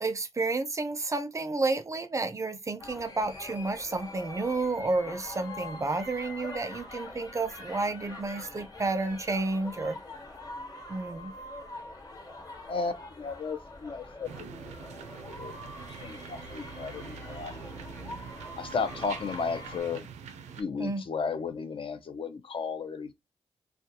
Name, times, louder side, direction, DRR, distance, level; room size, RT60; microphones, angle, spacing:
voice 1, 0.0-10.0 10.9-11.3 20.8-21.0, right 3 dB, 25° right, 0.4 m, -31 dB
sound 1, 2.8-19.8, left 2 dB, 35° left, 1.2 m, -44 dB
voice 2, 12.7-14.7 15.2-15.5 16.0-17.6 18.6-20.1 20.6-23.1, left 5 dB, 50° left, 0.5 m, -34 dB
sound 2, 14.2-20.6, right 6 dB, 90° right, 0.4 m, -44 dB
2.3 x 2.2 x 2.7 m
cardioid pair, 60°, 11 cm